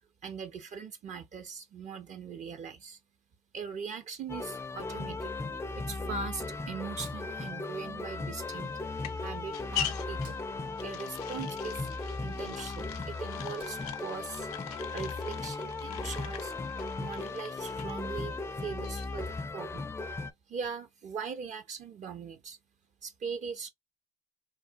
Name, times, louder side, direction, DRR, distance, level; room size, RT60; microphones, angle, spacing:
voice 1, 0.2-3.0 3.5-5.3 5.8-8.7 9.2-10.4 10.8-11.9 12.2-14.5 14.9-16.5 17.0-19.9 20.5-22.6 23.0-23.7, right 5 dB, 40° right, 0.5 m, -40 dB
sound 1, 4.3-20.3, left 3 dB, 15° left, 0.4 m, -37 dB
Hands, 6.9-8.1 8.3-9.6 10.0-12.4 12.8-12.9 13.3-14.9, right 5 dB, 65° right, 1.7 m, -58 dB
sound 2, 8.2-19.4, left 11 dB, 85° left, 0.5 m, -43 dB
3.3 x 2.2 x 2.5 m
hypercardioid pair, 70°, 19 cm